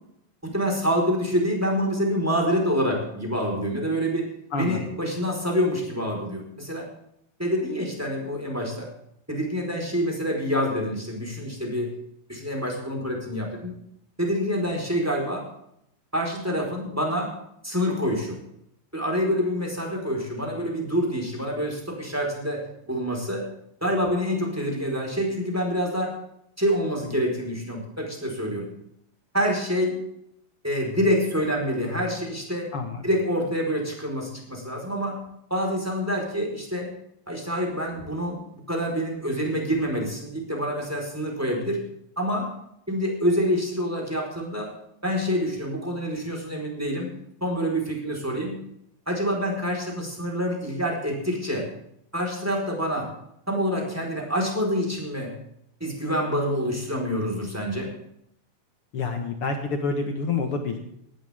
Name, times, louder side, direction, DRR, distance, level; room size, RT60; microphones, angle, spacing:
voice 1, 0.4-4.3 4.6-6.9 7.4-8.9 9.3-12.0 12.3-13.7 14.2-15.5 16.1-17.3 17.6-18.4 18.9-23.5 23.8-26.2 26.6-28.7 29.3-30.0 30.6-32.7 33.0-35.2 35.5-36.9 37.3-38.4 38.7-41.8 42.2-42.5 42.9-44.7 45.0-47.1 47.4-48.6 49.1-51.7 52.1-53.1 53.5-55.3 55.8-57.9, equal, 5° right, 1 dB, 4.0 m, -26 dB
voice 2, 4.5-5.0 32.7-33.0 58.9-60.8, left 4 dB, 90° left, 4 dB, 1.2 m, -28 dB
18.5 x 14.5 x 3.6 m, 0.74 s
omnidirectional pair, 5.1 m